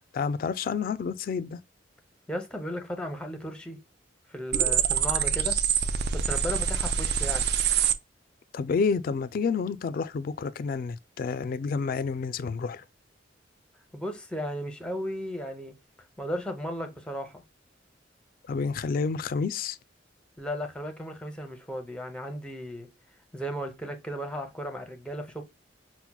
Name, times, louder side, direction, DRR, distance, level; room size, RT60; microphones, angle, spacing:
voice 1, 0.1-1.6 8.5-12.8 18.5-19.8, left 5 dB, 50° left, 0.3 m, -29 dB
voice 2, 2.3-3.8 4.3-5.6 6.1-7.5 13.9-15.7 16.2-17.4 20.4-22.9 23.3-25.4, equal, 5° left, 0.6 m, -35 dB
sound 1, 4.5-7.9, right 7 dB, 65° right, 0.4 m, -25 dB
5.8 x 2.1 x 2.2 m
head